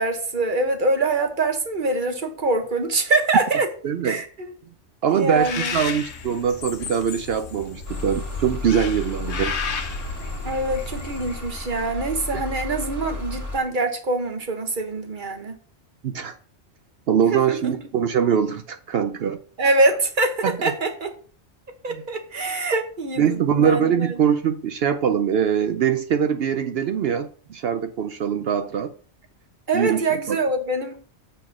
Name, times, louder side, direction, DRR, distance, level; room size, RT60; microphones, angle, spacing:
voice 1, 0.0-3.7 4.0-4.3 5.1-5.8 10.4-15.6 17.3-17.7 19.6-21.1 21.8-24.1 29.7-31.0, right 2 dB, 45° right, 1.4 m, -24 dB
voice 2, 3.8-4.2 5.0-9.5 12.3-12.4 16.0-16.4 17.1-19.4 20.4-20.7 21.9-22.0 23.2-28.9 29.7-30.4, right 8 dB, 65° right, 0.8 m, -23 dB
Bird, 5.3-11.7, left 5 dB, 70° left, 1.1 m, -33 dB
sound 1, 7.9-13.6, left 2 dB, 15° right, 2.0 m, -33 dB
7.8 x 4.3 x 5.9 m
omnidirectional pair, 1.2 m